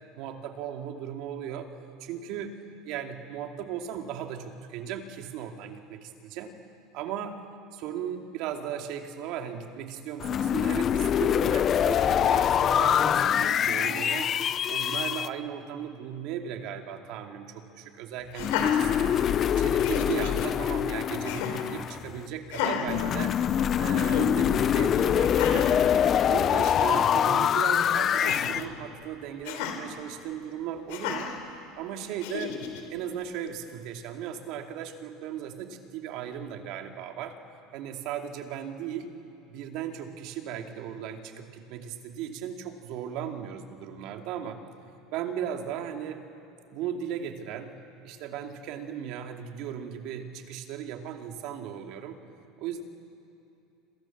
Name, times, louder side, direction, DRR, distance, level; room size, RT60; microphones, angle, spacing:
voice 1, 0.2-1.7 2.0-2.6 2.8-6.5 6.9-7.4 7.7-14.3 14.7-23.3 23.8-25.7 26.2-31.3 31.8-32.6 32.9-37.4 37.7-39.1 39.5-44.6 45.1-46.2 46.7-47.7 48.0-52.2 52.6-52.8, right 9 dB, 60° right, 4 dB, 2.7 m, -37 dB
sound 1, 10.2-15.3 18.4-22.2 22.9-28.6, left 9 dB, 35° left, 0.7 m, -24 dB
Laughter, 18.3-19.4 19.8-20.5 21.2-21.7 22.5-23.7 24.1-24.3 25.2-25.8 26.3-26.4 26.6-27.0 28.1-28.7 29.4-29.8 30.9-31.4 32.2-32.8, left 7 dB, 75° left, 4.0 m, -33 dB
28.0 x 27.5 x 7.3 m, 2.8 s
supercardioid pair, 130°, 0 cm